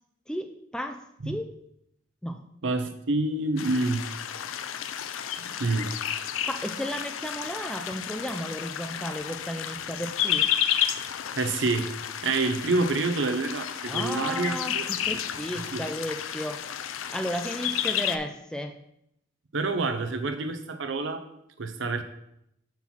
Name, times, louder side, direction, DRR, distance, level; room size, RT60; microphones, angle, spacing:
voice 1, 0.3-1.5 2.2-2.4 6.5-10.5 13.9-16.6 17.1-18.7, equal, 5° left, 6 dB, 0.3 m, -34 dB
voice 2, 2.6-4.0 5.5-5.9 11.4-11.9 12.2-14.9 15.7-15.8 19.5-21.3 21.6-22.0, right 3 dB, 70° right, 8 dB, 0.7 m, -27 dB
sound 1, 3.6-18.2, left 10 dB, 90° left, 0.4 m, -31 dB
5.5 x 4.4 x 5.9 m, 0.79 s
head